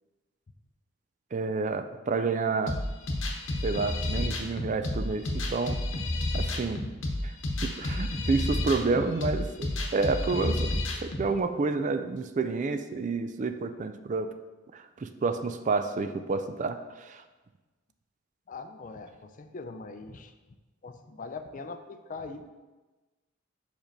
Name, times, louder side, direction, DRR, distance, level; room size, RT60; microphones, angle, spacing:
voice 1, 1.3-2.7 3.6-5.8 6.3-6.9 7.2-7.3 7.6-10.7 11.0-14.3 14.7-17.2, right 4 dB, 40° right, 9 dB, 0.4 m, -29 dB
sound 1, 2.7-11.3, left 1 dB, 70° left, 1.0 m, -31 dB
voice 2, 18.5-20.3 20.8-22.4, left 4 dB, 40° left, 8 dB, 0.4 m, -41 dB
5.3 x 5.1 x 5.1 m, 1.2 s
head